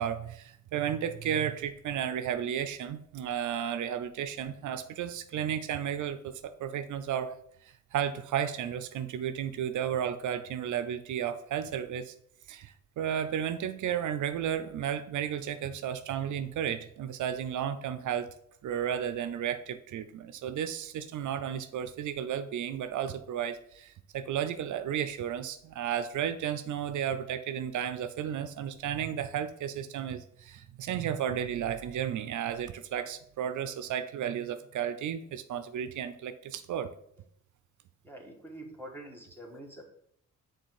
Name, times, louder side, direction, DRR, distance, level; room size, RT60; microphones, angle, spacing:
voice 1, 0.0-7.4 7.6-12.1 12.5-18.3 18.6-36.9, right 9 dB, 70° right, 11 dB, 0.5 m, -33 dB
voice 2, 38.0-39.9, right 1 dB, 5° left, 1 dB, 1.6 m, -46 dB
6.7 x 3.9 x 4.7 m, 0.67 s
cardioid pair, 105°, 31 cm